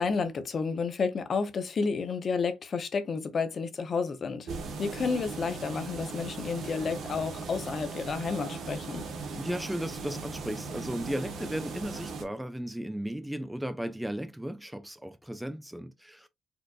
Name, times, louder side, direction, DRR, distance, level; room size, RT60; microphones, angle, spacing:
voice 1, 0.0-4.5 4.8-9.0, left 5 dB, 45° left, 0.7 m, -31 dB
sound 1, 4.5-12.2, right 4 dB, 70° right, 1.2 m, -38 dB
voice 2, 9.4-16.3, equal, 5° right, 0.4 m, -35 dB
4.4 x 2.5 x 2.4 m
cardioid pair, 90°, 0 cm